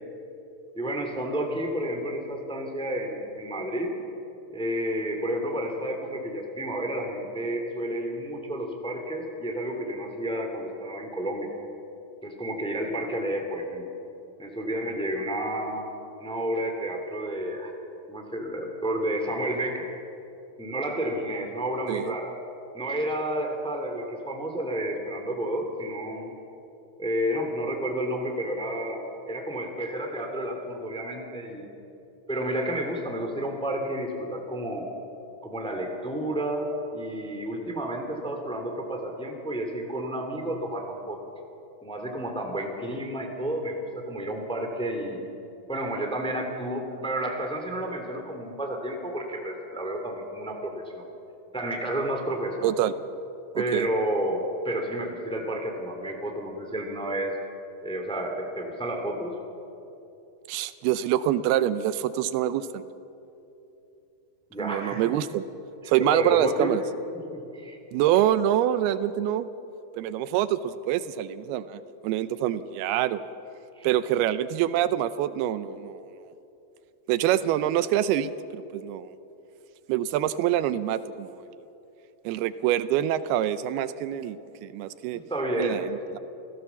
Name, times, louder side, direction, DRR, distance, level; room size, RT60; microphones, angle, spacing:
voice 1, 0.7-3.9 4.5-11.5 12.2-13.8 14.4-15.9 16.2-17.7 18.1-19.9 20.6-22.3 22.7-26.3 27.0-31.7 32.3-34.9 35.4-41.2 41.8-45.2 45.7-51.0 51.5-52.7 53.6-54.4 54.6-57.3 57.8-59.3 64.5-65.0 66.0-66.7 67.1-67.8 73.8-73.9 85.3-85.8 86.1-86.2, right 1 dB, ahead, 3 dB, 1.9 m, -31 dB
voice 2, 52.6-52.9 53.6-53.9 60.5-62.8 64.6-65.4 65.9-66.8 67.9-69.5 70.0-73.3 73.8-76.0 77.1-79.1 79.9-81.4 82.2-85.2 85.6-86.0, right 11 dB, 85° right, 13 dB, 2.7 m, -26 dB
28.5 x 17.0 x 7.1 m, 2.9 s
omnidirectional pair, 4.5 m